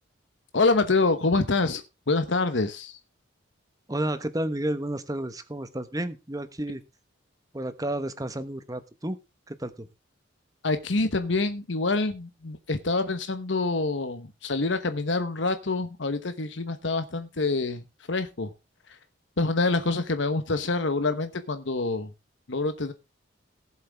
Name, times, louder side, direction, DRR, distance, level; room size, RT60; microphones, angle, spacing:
voice 1, 0.5-3.0 10.6-17.8 18.1-18.5 19.4-22.1 22.5-22.9, left 3 dB, 70° left, 9 dB, 1.1 m, -26 dB
voice 2, 3.9-6.8 7.5-9.2 9.5-9.9, right 1 dB, 20° right, 11 dB, 1.1 m, -31 dB
18.0 x 7.6 x 3.5 m, 0.26 s
head